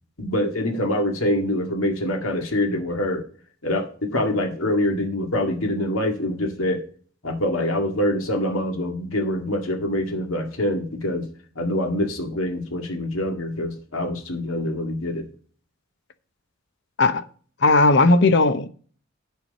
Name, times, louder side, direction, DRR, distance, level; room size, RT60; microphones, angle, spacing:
voice 1, 0.2-3.2 3.6-6.8 7.2-11.3 11.6-15.3, left 1 dB, 80° left, 2.0 m, -25 dB
voice 2, 17.6-18.7, left 2 dB, 60° left, 0.8 m, -16 dB
10.5 x 4.7 x 5.4 m
head